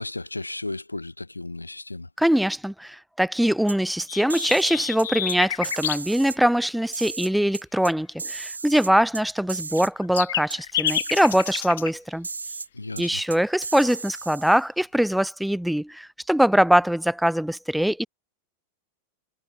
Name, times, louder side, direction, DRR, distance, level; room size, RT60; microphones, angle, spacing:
voice 1, 0.0-2.1 12.7-13.2, left 2 dB, 85° left, 2.0 m, -34 dB
voice 2, 2.2-12.3 13.0-18.1, equal, ahead, 0.7 m, -22 dB
sound 1, 3.7-4.7 5.0-5.4 5.6-6.4 6.9-7.9 8.2-9.2 9.5-9.9 10.2-10.3 10.5-10.6 10.9-11.6 12.2-12.7 13.0-13.1 13.3-14.6, right 4 dB, 75° right, 3.8 m, -35 dB
sound 2, 4.1-6.0 9.6-11.9, left 11 dB, 60° left, 0.9 m, -29 dB
figure-of-eight pair, 90°, 0 cm